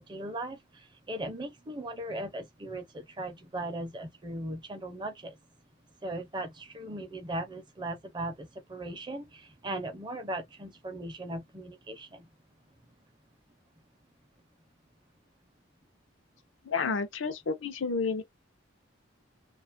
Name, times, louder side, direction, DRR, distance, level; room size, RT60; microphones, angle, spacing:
voice 1, 0.0-5.4 6.0-12.3, right 1 dB, 25° right, 0.5 m, -38 dB
voice 2, 16.6-18.2, left 4 dB, 85° left, 0.6 m, -30 dB
2.4 x 2.3 x 2.5 m
head